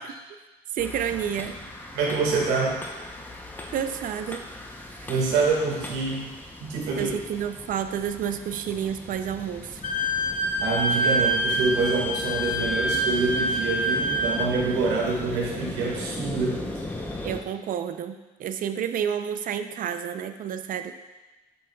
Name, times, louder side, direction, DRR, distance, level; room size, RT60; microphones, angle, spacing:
voice 1, 0.7-1.6 3.7-4.5 4.9-5.1 7.0-9.8 17.2-20.9, right 8 dB, 55° right, 9 dB, 0.5 m, -30 dB
sound 1, 0.8-17.4, left 2 dB, 10° left, 0.7 m, -38 dB
voice 2, 1.9-2.8 5.1-6.3 6.6-7.1 10.6-16.6, right 4 dB, 85° right, -2 dB, 1.8 m, -26 dB
Wind instrument woodwind instrument, 9.8-14.5, right 1 dB, 50° left, 0.7 m, -26 dB
7.6 x 7.5 x 2.3 m, 1.1 s
cardioid pair, 110°, 17 cm